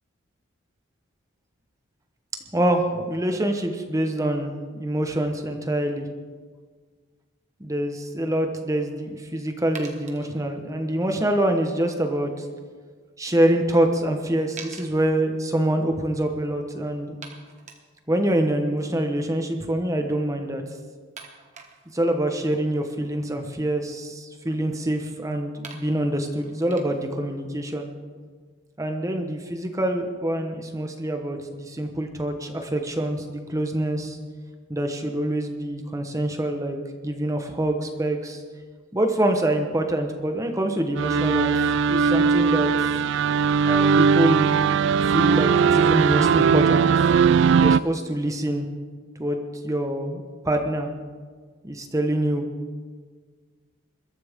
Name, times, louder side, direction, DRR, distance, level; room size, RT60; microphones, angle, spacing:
voice 1, 2.5-6.1 7.6-12.5 13.2-17.1 18.1-20.6 21.9-27.9 28.8-34.2 34.7-36.8 37.0-38.4 38.9-41.6 41.9-42.7 43.7-44.5 45.0-46.9 47.6-48.7 49.2-50.9 51.6-52.4, right 1 dB, 15° right, 4 dB, 1.0 m, -25 dB
sound 1, 8.6-8.7 9.7-10.3 13.4-13.5 13.7-13.8 14.6-14.9 15.9-16.0 16.2-16.3 17.2-17.8 20.0-20.2 21.2-22.0 23.5-24.6 25.3-25.4 25.6-27.2, right 5 dB, 35° right, 1.4 m, -44 dB
sound 2, 41.0-47.8, right 6 dB, 60° right, 0.3 m, -19 dB
21.5 x 13.5 x 3.6 m, 1.5 s
head